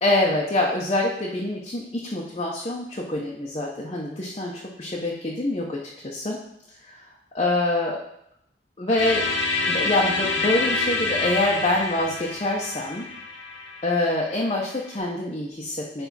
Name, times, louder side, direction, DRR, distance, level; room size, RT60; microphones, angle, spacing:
voice 1, 0.0-5.8 6.0-6.4 6.9-7.0 7.3-8.0 8.8-9.3 9.6-13.1 13.8-16.1, left 2 dB, 35° left, -3 dB, 0.9 m, -25 dB
sound 1, 9.0-14.9, left 3 dB, 85° left, 1.5 m, -27 dB
10.5 x 3.5 x 4.2 m, 0.77 s
head